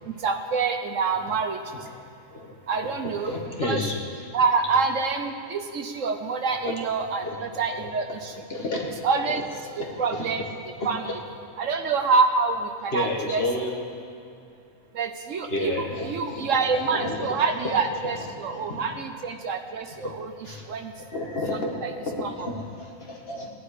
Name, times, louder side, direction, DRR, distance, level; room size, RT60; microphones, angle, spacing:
voice 1, 0.2-1.6 2.7-3.3 3.6-3.8 4.3-8.3 9.0-9.4 10.0-10.4 10.8-11.2 11.6-13.4 14.9-15.7 16.0-20.3 20.7-20.9 21.5-21.9 22.2-22.3, right 4 dB, 65° right, 6 dB, 1.1 m, -26 dB
voice 2, 2.8-4.0 6.6-6.7 7.2-10.5 10.8-11.2 12.9-13.8 15.5-18.9 20.0-20.1 20.4-20.7 20.9-23.5, left 2 dB, 45° left, -1 dB, 1.9 m, -32 dB
17.5 x 11.0 x 4.9 m, 2.6 s
omnidirectional pair, 1.5 m